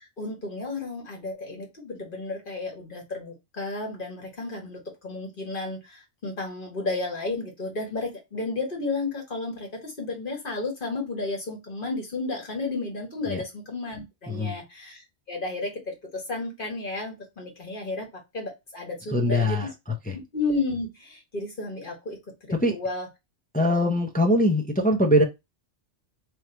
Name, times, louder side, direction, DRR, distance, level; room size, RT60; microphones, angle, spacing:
voice 1, 0.0-18.1 18.3-19.7 20.3-23.1, left 3 dB, 45° left, 1.5 m, -32 dB
voice 2, 14.3-14.6 19.1-19.7 20.1-20.2 22.6-22.8 23.5-25.2, left 1 dB, 10° left, 0.5 m, -22 dB
3.2 x 2.6 x 4.4 m
omnidirectional pair, 1.2 m